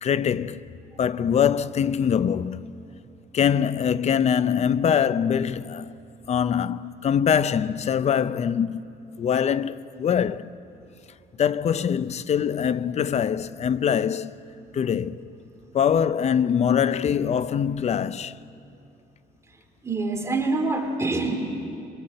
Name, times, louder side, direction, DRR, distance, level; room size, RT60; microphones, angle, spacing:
voice 1, 0.0-0.7 1.0-2.7 3.3-5.9 6.3-8.8 9.2-10.5 11.4-14.3 14.7-15.2 15.7-18.3, left 8 dB, 40° left, 0.6 m, -23 dB
voice 2, 19.8-21.4, right 3 dB, 15° right, 3.0 m, -25 dB
24.0 x 23.0 x 7.8 m
cardioid pair, 110°, 17 cm